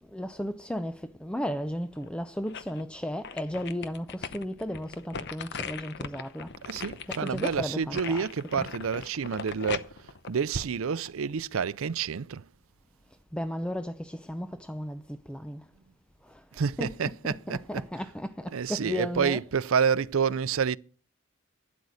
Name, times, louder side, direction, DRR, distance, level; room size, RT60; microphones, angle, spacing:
voice 1, 0.1-6.6 7.1-8.3 8.6-8.7 13.3-15.7 16.2-16.4 16.8-17.1 17.5-19.4, equal, 5° left, 0.5 m, -34 dB
sound 1, 2.0-2.8 3.2-11.3 11.7-11.8, left 5 dB, 55° left, 0.9 m, -39 dB
voice 2, 6.7-12.5 16.5-18.0 18.4-20.8, right 6 dB, 80° right, 0.5 m, -29 dB
12.0 x 9.6 x 6.4 m
head